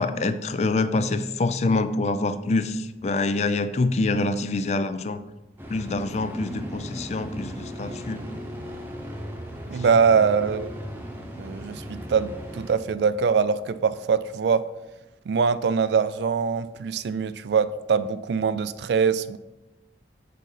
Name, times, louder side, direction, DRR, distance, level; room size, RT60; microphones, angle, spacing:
voice 1, 0.0-5.2 5.7-8.2 9.7-9.8, left 3 dB, 40° left, 0.4 m, -26 dB
sound 1, 5.6-12.8, equal, 10° right, 0.9 m, -37 dB
sound 2, 6.0-14.9, equal, 65° left, 2.0 m, -50 dB
voice 2, 9.7-10.7 11.4-14.7 15.3-19.4, right 6 dB, 75° right, 0.3 m, -23 dB
7.4 x 3.9 x 5.7 m
head